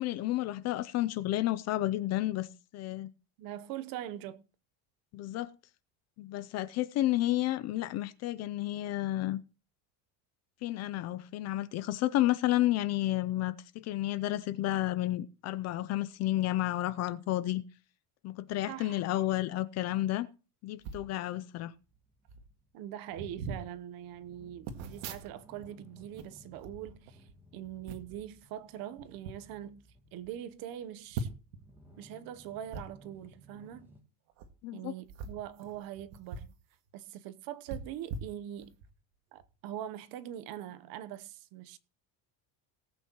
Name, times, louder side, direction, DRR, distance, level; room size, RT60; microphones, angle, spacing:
voice 1, 0.0-2.5 2.7-3.1 5.1-5.5 6.2-9.4 10.6-17.6 18.2-20.3 20.6-21.7 34.6-34.9, left 15 dB, 35° left, 0.5 m, -31 dB
voice 2, 3.4-4.4 18.7-19.0 22.7-27.3 27.5-29.8 30.1-31.3 32.0-33.9 34.7-36.6 36.9-38.8 39.3-41.8, right 11 dB, 50° right, 0.9 m, -42 dB
sound 1, 20.8-21.1 21.9-22.0 22.3-22.5 23.1-23.7 24.7-25.7 26.0-27.4 27.9-28.2 29.0-29.4 29.9-30.0 30.2-30.3 31.1-31.6 32.7-32.8 34.3-34.5 35.1-36.6 36.9-37.0 37.7-38.9 39.4-39.5, right 4 dB, 75° right, 1.9 m, -41 dB
sound 2, 21.7-34.0, equal, 5° right, 2.4 m, -59 dB
19.0 x 8.4 x 2.9 m
cardioid pair, 170°, 45 cm